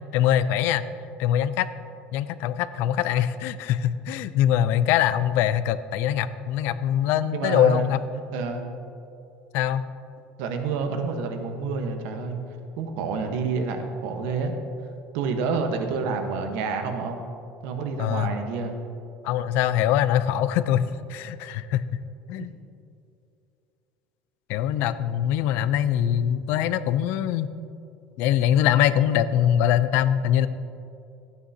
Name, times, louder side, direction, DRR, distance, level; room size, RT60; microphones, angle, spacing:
voice 1, 0.1-0.8 1.2-1.7 2.1-8.0 9.5-9.8 18.0-18.3 19.2-22.0 22.3-22.5 24.5-27.5 28.2-30.5, left 10 dB, 65° left, 14 dB, 0.4 m, -23 dB
voice 2, 7.3-8.7 10.4-12.4 12.8-14.5 15.1-17.2 17.6-18.8, right 4 dB, 75° right, 5 dB, 1.1 m, -28 dB
14.0 x 9.3 x 2.8 m, 2.6 s
cardioid pair, 145°, 4 cm